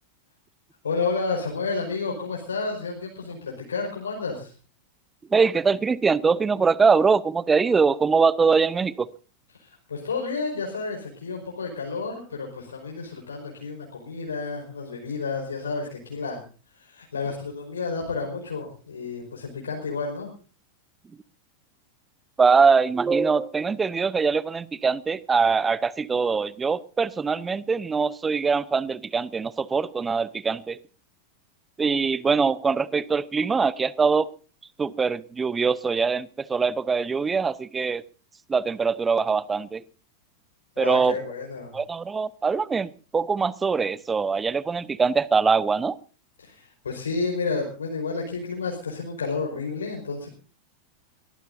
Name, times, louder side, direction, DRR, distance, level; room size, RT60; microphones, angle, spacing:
voice 1, 0.8-4.5 9.6-20.3 40.7-41.7 46.4-50.3, left 4 dB, 70° left, 0 dB, 5.1 m, -31 dB
voice 2, 5.3-9.1 22.4-30.8 31.8-34.3 34.8-38.0 38.5-39.8 40.8-41.2 41.7-46.0, right 5 dB, 15° right, 21 dB, 0.8 m, -23 dB
22.5 x 19.0 x 2.7 m, 0.38 s
figure-of-eight pair, 90°, 0 cm